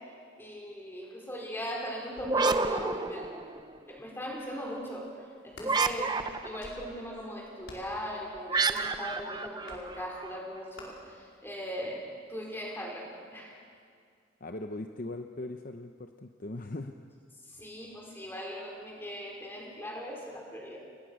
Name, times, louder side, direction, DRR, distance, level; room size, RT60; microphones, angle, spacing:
voice 1, 0.4-3.2 3.9-6.1 6.4-13.5 17.5-20.8, equal, 10° left, -2 dB, 4.8 m, -39 dB
sound 1, 2.2-3.8 5.6-6.7 8.5-10.4, right 4 dB, 20° right, 0.8 m, -29 dB
sound 2, 5.3-5.7 6.4-6.9 7.6-8.0 8.7-9.0 9.7-9.9 10.8-10.9, left 2 dB, 70° left, 5.0 m, -48 dB
voice 2, 14.4-17.0, left 2 dB, 40° left, 6 dB, 0.7 m, -39 dB
28.5 x 20.0 x 6.4 m, 2.2 s
head